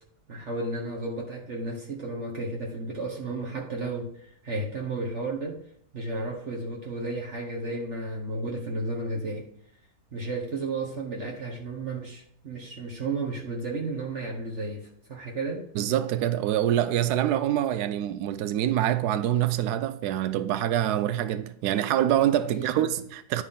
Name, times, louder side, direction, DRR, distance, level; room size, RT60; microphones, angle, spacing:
voice 1, 0.3-5.6 5.9-9.5 10.1-15.7 22.5-22.9, right 2 dB, 45° right, 1.3 m, -33 dB
voice 2, 15.7-23.4, right 11 dB, 75° right, 1.1 m, -25 dB
10.0 x 6.2 x 3.6 m
omnidirectional pair, 1.8 m